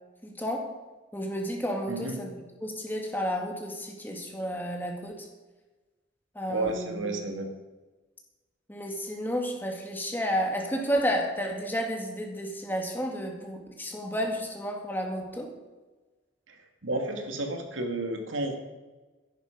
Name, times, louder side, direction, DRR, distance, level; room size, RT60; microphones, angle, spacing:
voice 1, 0.2-0.7 1.1-5.2 6.4-7.1 8.7-15.5, equal, 10° left, 1 dB, 2.3 m, -31 dB
voice 2, 1.9-2.2 6.5-7.5 16.5-16.6 16.8-18.5, right 2 dB, 85° right, 3 dB, 2.3 m, -31 dB
14.5 x 11.0 x 5.2 m, 1.2 s
head